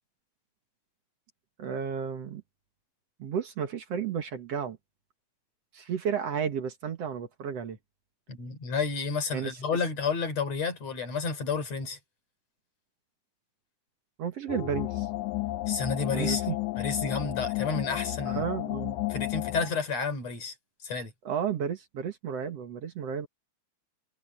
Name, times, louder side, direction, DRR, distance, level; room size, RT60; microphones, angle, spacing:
voice 1, 1.6-2.4 3.2-4.8 5.7-7.8 9.3-9.6 14.2-15.1 16.1-16.6 18.3-19.1 21.2-23.3, right 7 dB, 60° right, 2.4 m, -32 dB
voice 2, 8.3-12.0 15.7-16.4 16.8-18.4 19.1-20.5 20.8-21.1, left 5 dB, 60° left, 5.0 m, -31 dB
sound 1, 14.5-19.7, left 18 dB, 85° left, 2.3 m, -32 dB
omnidirectional pair, 3.5 m